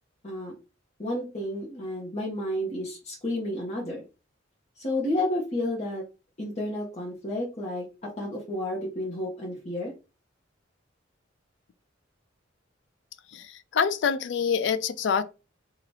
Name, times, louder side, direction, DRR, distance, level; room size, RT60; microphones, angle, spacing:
voice 1, 1.0-4.0 4.8-6.0 6.4-9.9, left 1 dB, 35° left, 0.9 m, -31 dB
voice 2, 13.3-15.2, left 6 dB, 65° left, 0.3 m, -26 dB
2.8 x 2.4 x 3.2 m
head